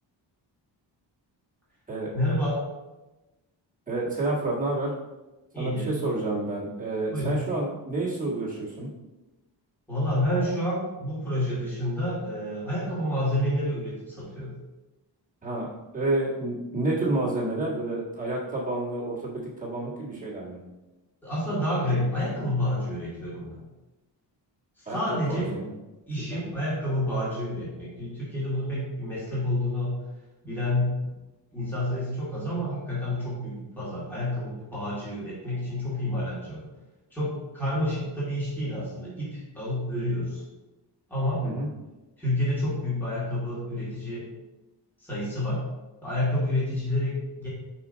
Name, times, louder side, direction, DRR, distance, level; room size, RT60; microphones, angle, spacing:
voice 1, 2.1-2.6 5.5-6.0 7.1-7.4 9.9-14.5 21.2-23.6 24.8-25.5 26.1-29.9 30.4-31.1 31.5-36.6 37.1-40.4 41.1-41.4 42.2-44.2 45.0-45.6 46.0-47.5, left 1 dB, 5° left, -9 dB, 1.9 m, -29 dB
voice 2, 3.9-4.9 5.6-8.9 15.4-15.7 15.9-20.6 24.8-25.0 25.3-25.7 26.3-26.4 41.4-41.7, right 2 dB, 20° right, -6 dB, 1.6 m, -29 dB
5.0 x 4.8 x 3.9 m, 1.1 s
wide cardioid pair, 170°, 44 cm